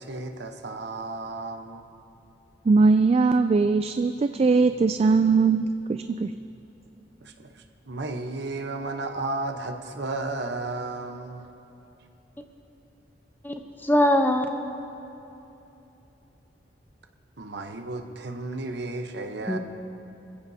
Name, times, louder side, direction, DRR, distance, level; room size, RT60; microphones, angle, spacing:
voice 1, 0.0-1.8 7.2-11.5 17.4-19.6, right 2 dB, 65° right, 5 dB, 1.0 m, -33 dB
voice 2, 2.7-6.3, right 4 dB, 35° right, 9 dB, 0.3 m, -20 dB
voice 3, 13.8-14.6 19.5-19.6, left 1 dB, 10° left, 5 dB, 0.8 m, -21 dB
25.5 x 15.5 x 2.8 m, 2.9 s
head